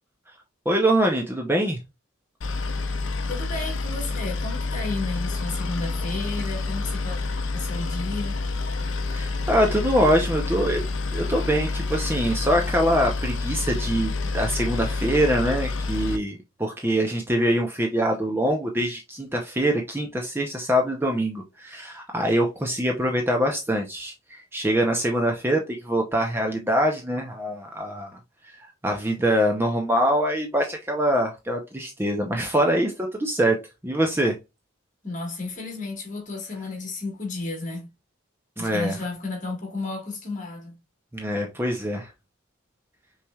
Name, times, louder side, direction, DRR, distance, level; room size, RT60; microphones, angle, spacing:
voice 1, 0.7-1.8 9.1-10.8 11.1-28.1 28.4-33.6 33.8-34.4 38.6-39.0 41.1-42.1, equal, 10° right, 0.6 m, -24 dB
Boat Water vehicle, 2.4-16.2, left 3 dB, 65° left, 0.6 m, -28 dB
voice 2, 3.3-7.2 7.5-8.4 35.0-37.9 38.6-40.8, left 3 dB, 35° left, 1.6 m, -33 dB
5.7 x 3.2 x 2.3 m
head